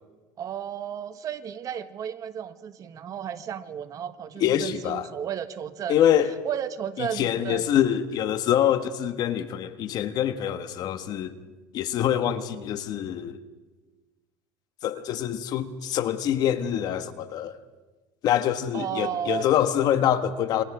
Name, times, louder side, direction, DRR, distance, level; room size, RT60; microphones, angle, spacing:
voice 1, 0.4-6.0 6.4-7.7 18.7-19.5, right 9 dB, 45° right, 1.5 m, -33 dB
voice 2, 4.4-5.1 5.9-6.4 7.0-11.3 11.7-13.4 14.8-17.6 18.2-20.6, left 10 dB, 60° left, 1.5 m, -25 dB
28.0 x 24.0 x 4.9 m
supercardioid pair, 100°, 8 cm